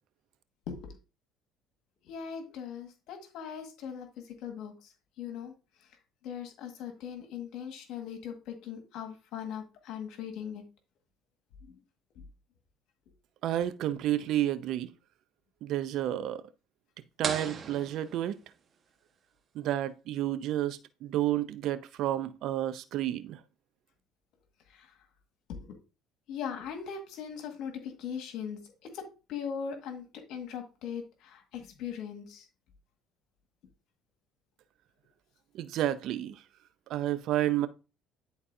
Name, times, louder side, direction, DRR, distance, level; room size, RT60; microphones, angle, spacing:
voice 1, 2.0-4.9 5.2-5.5 6.2-10.6 11.7-11.8 12.1-12.2 24.7-24.9 25.5-25.7 26.3-32.5, left 7 dB, 70° left, 1.7 m, -40 dB
voice 2, 13.4-14.9 15.6-16.4 17.2-18.4 19.5-23.4 35.5-36.4 36.9-37.7, right 13 dB, 65° right, 0.6 m, -30 dB
sound 1, 17.2-18.9, right 5 dB, 40° right, 1.2 m, -38 dB
11.0 x 4.0 x 2.7 m
supercardioid pair, 85°, 0 cm